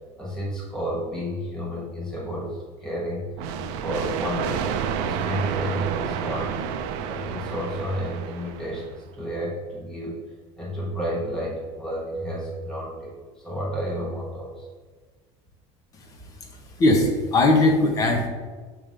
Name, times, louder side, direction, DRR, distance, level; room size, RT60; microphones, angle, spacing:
voice 1, 0.2-3.3 3.8-6.6 7.1-10.2 10.6-14.7, equal, 5° left, -6 dB, 1.2 m, -31 dB
sound 1, 3.4-8.9, right 7 dB, 60° right, 0.5 m, -30 dB
voice 2, 15.9-18.3, left 2 dB, 25° left, 4 dB, 0.7 m, -21 dB
6.7 x 3.0 x 5.0 m, 1.4 s
cardioid pair, 180°, 14 cm